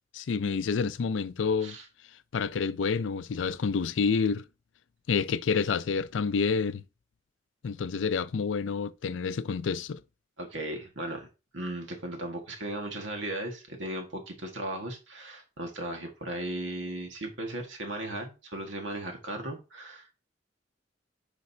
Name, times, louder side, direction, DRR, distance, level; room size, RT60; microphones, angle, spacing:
voice 1, 0.1-1.8 2.3-4.4 5.1-6.8 7.6-10.0, left 5 dB, 80° left, 0.4 m, -28 dB
voice 2, 10.4-11.3 11.5-20.1, right 1 dB, 90° right, 1.7 m, -36 dB
10.5 x 5.2 x 2.7 m
head